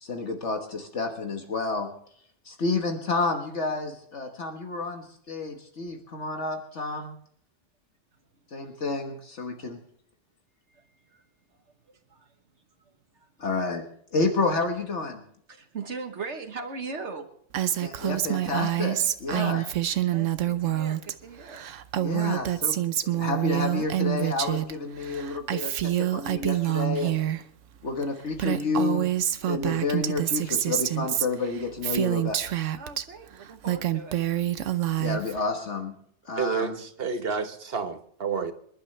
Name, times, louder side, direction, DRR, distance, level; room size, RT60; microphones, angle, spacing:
voice 1, 0.0-1.9 2.4-7.1 8.5-9.8 13.4-13.8 14.1-15.2 17.8-19.6 22.0-27.2 27.8-29.1 29.4-32.4 35.0-35.9 36.3-36.8, left 3 dB, 70° left, 1.7 m, -30 dB
voice 2, 11.9-12.3 13.1-13.3 15.5-17.3 19.3-19.5 20.1-21.7 32.8-34.2, right 4 dB, 70° right, 1.5 m, -39 dB
Female speech woman speaking, 17.5-21.1 21.4-24.7 25.0-27.4 28.0-28.1 28.3-33.0 33.5-35.4, right 12 dB, 85° right, 1.1 m, -27 dB
voice 3, 36.4-38.5, right 6 dB, 55° right, 1.4 m, -30 dB
26.5 x 11.5 x 3.3 m
omnidirectional pair, 1.2 m